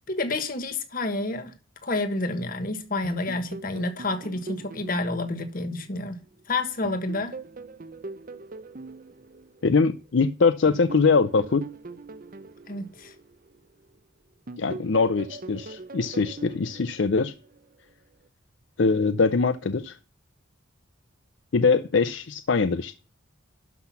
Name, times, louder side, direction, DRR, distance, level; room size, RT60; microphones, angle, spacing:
voice 1, 0.1-1.5 1.8-6.2 6.5-7.4 12.7-13.1, left 2 dB, 45° left, 1.4 m, -29 dB
sound 1, 3.0-6.4 6.8-10.1 10.7-14.0 14.5-17.7, right 3 dB, 45° right, 0.6 m, -42 dB
voice 2, 9.6-11.6 14.6-17.3 18.8-20.0 21.5-22.9, left 4 dB, 60° left, 0.5 m, -22 dB
12.0 x 5.9 x 5.8 m
head